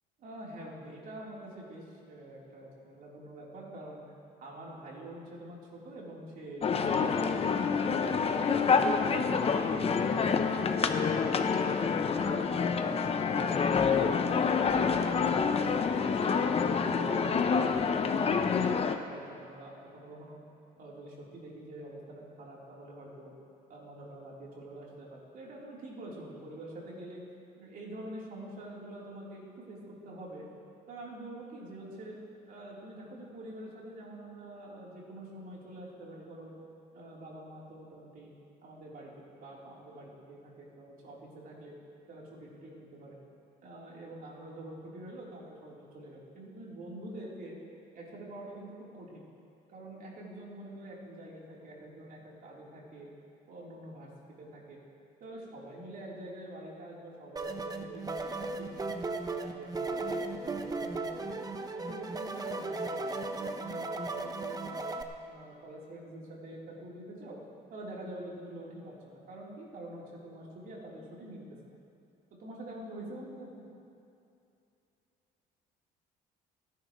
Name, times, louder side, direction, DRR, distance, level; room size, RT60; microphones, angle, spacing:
voice 1, 0.2-4.0 4.4-8.5 9.0-11.7 12.1-16.1 16.8-18.6 19.0-20.4 20.8-23.3 23.7-27.2 27.6-30.4 30.9-32.2 32.5-36.5 36.9-38.3 38.6-41.7 42.1-43.2 43.6-47.6 47.9-49.2 49.7-53.1 53.5-54.1 54.4-54.8 55.2-59.0 59.4-61.4 61.7-64.8 65.3-67.4 67.7-71.6 72.4-73.7, right 1 dB, 60° right, -4 dB, 3.9 m, -46 dB
sound 1, 6.6-19.0, left 5 dB, 35° left, 0.9 m, -27 dB
sound 2, 57.4-65.0, right 3 dB, 20° right, 0.9 m, -36 dB
28.5 x 10.5 x 3.2 m, 2.6 s
cardioid pair, 110°, 17 cm